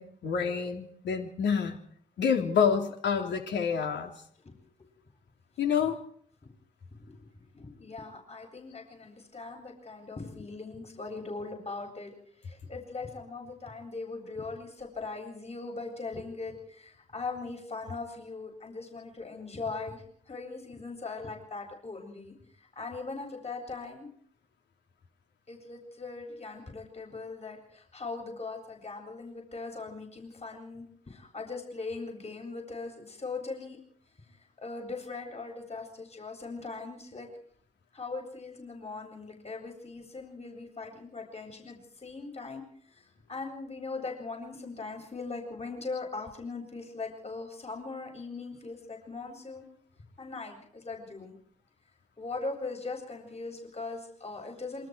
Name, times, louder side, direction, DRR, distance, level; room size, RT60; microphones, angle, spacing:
voice 1, 0.0-1.8 2.2-4.1 5.6-6.0, left 6 dB, 65° left, 3 dB, 3.6 m, -28 dB
voice 2, 6.9-12.1 12.4-22.3 22.7-24.1 25.5-33.8 34.6-37.3 37.9-42.6 42.9-43.0 43.3-49.6 50.2-51.3 52.2-54.9, left 3 dB, 35° left, 3 dB, 7.8 m, -40 dB
27.5 x 23.5 x 4.8 m, 0.64 s
hypercardioid pair, 40°, 19 cm